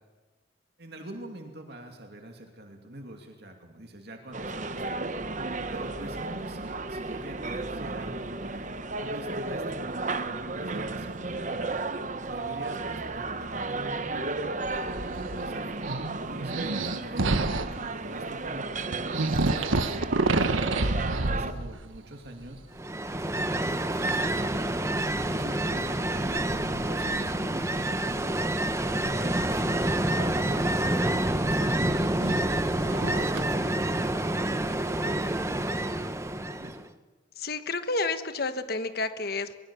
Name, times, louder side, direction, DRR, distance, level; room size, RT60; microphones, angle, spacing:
voice 1, 0.8-5.0 5.7-10.0 10.6-14.5 15.0-22.6 23.1-24.5 25.1-28.4 28.9-35.3 36.3-36.8, right 1 dB, 55° right, 3 dB, 2.7 m, -44 dB
sound 1, 4.3-21.5, right 3 dB, 40° right, 1.0 m, -34 dB
sound 2, 14.6-15.5 15.8-17.8 18.6-18.7 18.9-22.0 22.3-22.8 24.0-24.4 25.1-25.2 27.1-27.2 30.3-33.5, right 2 dB, 85° right, 1.4 m, -29 dB
Ocean, 22.8-36.8, right 1 dB, 15° right, 0.9 m, -28 dB
voice 2, 37.4-39.5, left 3 dB, 50° left, 9 dB, 1.4 m, -30 dB
23.0 x 22.5 x 7.1 m, 1.3 s
head